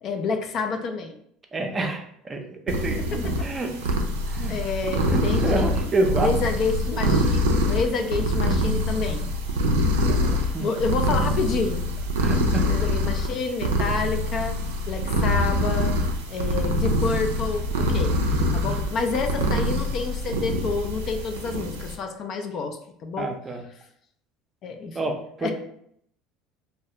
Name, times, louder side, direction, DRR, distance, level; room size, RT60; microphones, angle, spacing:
voice 1, 0.0-1.1 3.4-3.5 4.5-5.7 6.2-9.3 10.6-11.8 12.7-14.6 14.9-16.0 16.3-18.2 18.5-23.3 24.6-25.0 25.4-25.5, left 4 dB, 50° left, 5 dB, 0.3 m, -28 dB
voice 2, 1.5-3.9 4.3-4.7 5.1-6.3 10.0-10.6 12.2-12.7 18.3-18.7 23.2-23.6 24.9-25.5, right 2 dB, 30° right, 3 dB, 0.5 m, -29 dB
sound 1, 2.7-21.9, left 1 dB, 85° right, 0.3 m, -25 dB
2.3 x 2.2 x 2.8 m, 0.69 s
hypercardioid pair, 75°, 0 cm